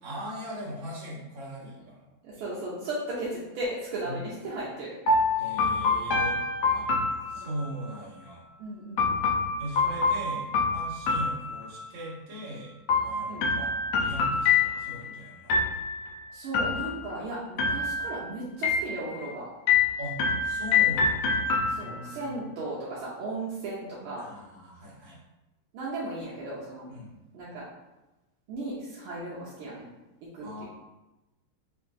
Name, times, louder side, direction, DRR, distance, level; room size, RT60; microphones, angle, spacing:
voice 1, 0.0-2.6 4.0-4.2 5.4-6.4 6.7-8.4 9.6-12.7 13.0-15.6 20.0-22.4 24.2-25.2 26.9-27.1 30.4-30.6, equal, 60° right, -6 dB, 1.9 m, -40 dB
voice 2, 2.2-5.0 7.3-7.5 8.6-9.2 13.3-13.5 16.3-19.5 21.7-24.3 25.7-26.9 27.3-27.6 28.5-29.9 30.3-30.6, right 2 dB, 80° right, -7 dB, 1.6 m, -36 dB
sound 1, 5.1-7.8 9.0-12.0 12.9-15.1 15.5-16.1 16.5-17.2 17.6-18.2 18.6-19.3 19.7-22.1, left 4 dB, 70° left, 1.3 m, -26 dB
6.2 x 2.6 x 2.4 m, 1.0 s
omnidirectional pair, 2.4 m